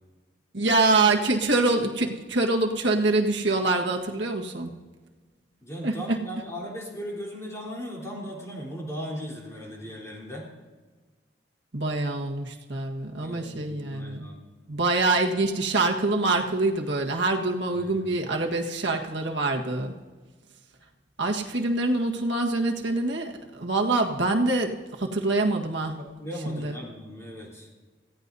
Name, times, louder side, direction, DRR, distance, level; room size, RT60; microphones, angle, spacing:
voice 1, 0.5-4.7 5.8-6.2 11.7-14.3 14.7-19.9 21.2-25.9 26.5-26.7, right 2 dB, 70° right, 1 dB, 1.6 m, -25 dB
voice 2, 5.6-10.5 13.2-14.5 17.8-18.1 26.0-27.7, equal, 15° left, -5 dB, 3.7 m, -37 dB
25.5 x 16.5 x 2.7 m, 1.4 s
head